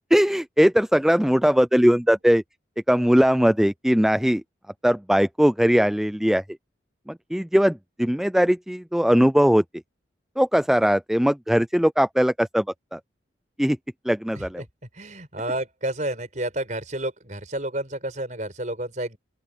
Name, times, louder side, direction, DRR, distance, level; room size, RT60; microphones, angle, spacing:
voice 1, 0.1-2.4 2.9-4.4 4.8-6.4 7.1-9.6 10.4-12.7 12.9-13.0 13.6-13.8 14.1-14.6, equal, ahead, 0.3 m, -20 dB
voice 2, 14.4-14.7 14.9-19.2, right 1 dB, 40° right, 5.3 m, -30 dB
open air
head